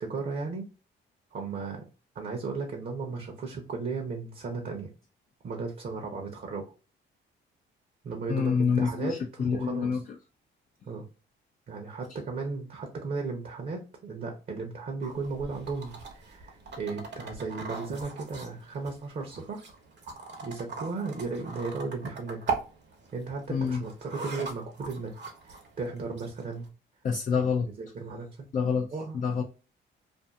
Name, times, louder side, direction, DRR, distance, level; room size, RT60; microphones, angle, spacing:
voice 1, 0.0-0.7 1.3-1.8 2.1-4.9 5.4-6.7 8.0-9.9 10.8-11.0 11.7-19.7 20.4-22.5 23.1-25.1 25.4-26.7 27.3-27.4 27.8-28.5 28.9-29.2, right 4 dB, 45° right, 0.8 m, -35 dB
voice 2, 8.3-10.0 23.5-23.8 27.0-27.7 28.5-29.4, left 6 dB, 40° left, 0.4 m, -27 dB
sound 1, 15.0-26.7, right 4 dB, 60° right, 1.0 m, -40 dB
2.6 x 2.4 x 2.3 m
cardioid pair, 90°, 20 cm